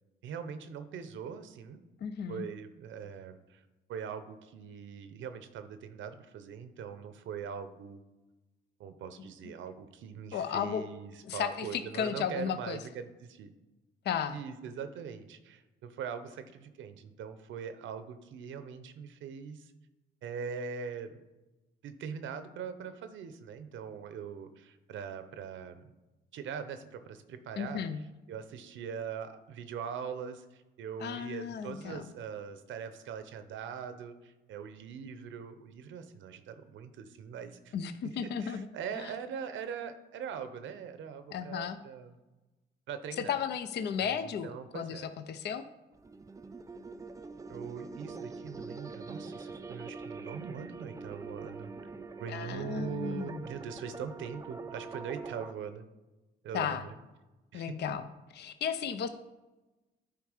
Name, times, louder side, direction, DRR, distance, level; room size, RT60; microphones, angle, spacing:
voice 1, 0.2-1.8 2.3-3.6 3.9-8.0 8.8-13.5 14.3-19.7 20.2-21.2 21.8-25.9 26.3-27.8 28.3-37.7 38.2-42.1 42.9-43.4 44.0-45.1 47.5-51.7 52.2-55.9 56.4-56.9 57.5-57.7, right 7 dB, 75° right, 10 dB, 0.7 m, -42 dB
voice 2, 2.0-2.5 10.3-10.8 11.3-12.8 14.1-14.4 27.6-28.0 31.0-32.0 37.7-38.7 39.0-39.1 41.3-41.8 43.2-45.0 45.3-45.6 52.3-53.4 56.5-56.9 57.5-58.1 58.4-59.1, left 8 dB, 60° left, 10 dB, 0.5 m, -34 dB
sound 1, 45.9-55.5, right 4 dB, 15° right, 0.4 m, -44 dB
9.7 x 3.3 x 4.9 m, 1.1 s
cardioid pair, 90°, 20 cm